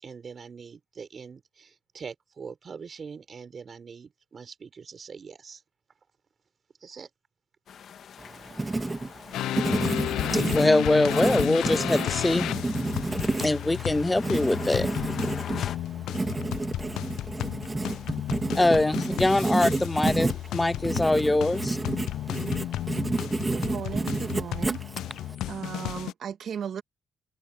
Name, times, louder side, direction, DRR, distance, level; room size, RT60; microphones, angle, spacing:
voice 1, 0.0-5.6 6.8-7.1, right 6 dB, 50° right, 5.7 m, -43 dB
sound 1, 7.7-15.8, left 8 dB, 70° left, 2.2 m, -44 dB
Writing, 8.2-25.3, right 2 dB, 25° right, 2.4 m, -30 dB
sound 2, 9.3-26.1, left 13 dB, 85° left, 0.3 m, -33 dB
voice 2, 10.3-12.5 13.4-14.9 18.6-21.8, left 2 dB, 15° left, 0.4 m, -23 dB
voice 3, 23.5-24.8 25.5-26.8, right 8 dB, 70° right, 2.0 m, -36 dB
supercardioid pair, 65°, 0 cm